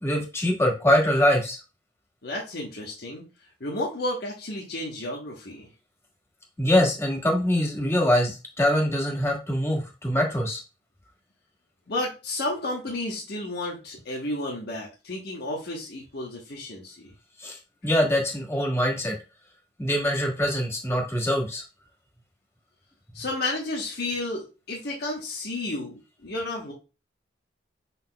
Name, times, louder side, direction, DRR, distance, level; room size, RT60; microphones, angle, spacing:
voice 1, 0.0-1.6 6.6-10.6 17.4-17.6 17.8-19.2 19.8-21.6, left 1 dB, 15° left, 0 dB, 1.5 m, -23 dB
voice 2, 2.2-3.2 3.6-5.7 11.9-17.1 23.1-26.7, left 2 dB, 60° left, -2 dB, 1.1 m, -32 dB
5.7 x 4.2 x 2.2 m, 0.30 s
head